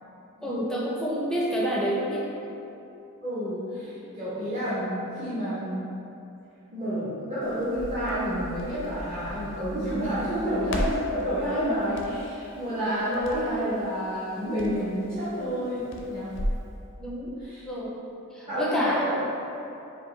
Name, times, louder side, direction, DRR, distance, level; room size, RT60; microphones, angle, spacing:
voice 1, 0.4-2.3 10.3-10.5 17.0-17.3 17.6-18.0 18.3-19.1, equal, 5° left, -5 dB, 0.5 m, -28 dB
voice 2, 3.2-5.9 6.7-16.3 17.5-17.6 18.5-19.1, equal, 30° right, -13 dB, 0.7 m, -29 dB
Crackle, 7.4-16.7, equal, 55° left, 0.5 m, -37 dB
5.1 x 2.6 x 3.1 m, 2.9 s
head